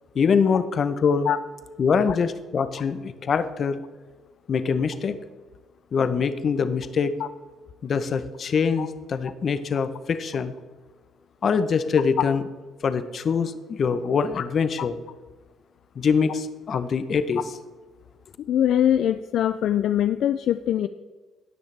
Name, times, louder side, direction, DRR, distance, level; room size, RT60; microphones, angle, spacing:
voice 1, 0.1-1.3 1.8-3.8 4.5-5.2 5.9-7.1 7.8-10.5 11.4-12.4 12.8-15.0 16.0-17.4, left 6 dB, 45° left, 12 dB, 0.7 m, -24 dB
voice 2, 18.5-20.9, left 10 dB, 65° left, 11 dB, 0.3 m, -23 dB
17.5 x 6.3 x 3.3 m, 1.3 s
cardioid pair, 100°, 0 cm